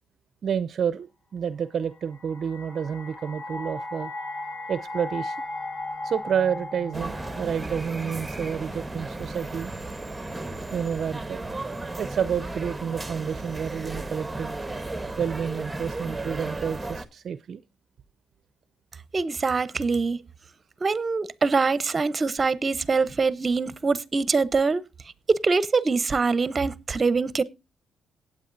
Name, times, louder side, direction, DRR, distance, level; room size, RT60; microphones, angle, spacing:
voice 1, 0.4-4.1 4.7-5.4 6.0-9.7 10.7-11.4 12.0-14.6 15.2-17.6, right 7 dB, 55° right, 0.5 m, -29 dB
sound 1, 1.9-9.0, left 2 dB, 45° left, 2.1 m, -37 dB
sound 2, 6.9-17.1, right 2 dB, 10° right, 1.1 m, -35 dB
voice 2, 19.1-20.2 20.8-24.9 25.3-27.4, right 4 dB, 35° right, 0.8 m, -24 dB
18.0 x 8.4 x 2.7 m
cardioid pair, 90°, 0 cm